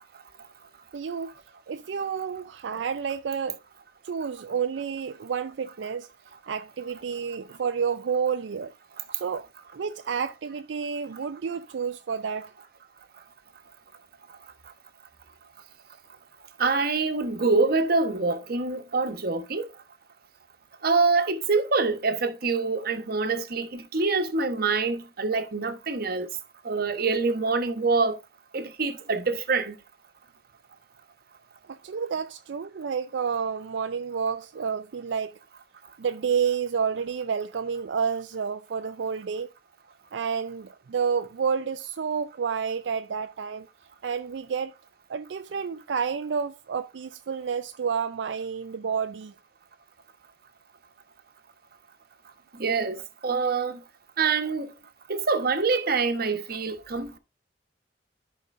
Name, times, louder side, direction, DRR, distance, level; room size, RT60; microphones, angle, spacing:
voice 1, 0.9-1.3 1.7-3.6 4.0-6.1 6.5-8.7 9.1-9.5 9.7-12.5 31.7-35.3 36.0-39.5 40.1-43.7 44.0-44.7 45.1-49.3, right 6 dB, 85° right, 0.4 m, -30 dB
voice 2, 16.6-19.7 20.8-26.3 26.6-28.2 28.5-29.7 52.6-53.8 54.2-54.7 55.1-57.2, right 4 dB, 55° right, 1.1 m, -25 dB
14.0 x 5.2 x 2.6 m
head